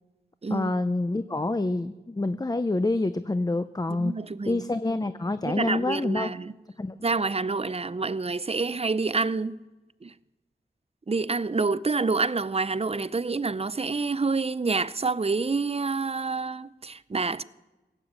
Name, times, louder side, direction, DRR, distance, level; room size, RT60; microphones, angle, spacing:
voice 1, 0.5-4.1 4.4-6.3 6.8-7.0, left 2 dB, 20° left, 0.5 m, -27 dB
voice 2, 3.9-4.7 5.4-6.5 7.0-9.6 10.0-10.1 11.1-17.4, right 4 dB, 35° right, 0.5 m, -28 dB
17.0 x 8.9 x 7.4 m
wide cardioid pair, 50°, 19 cm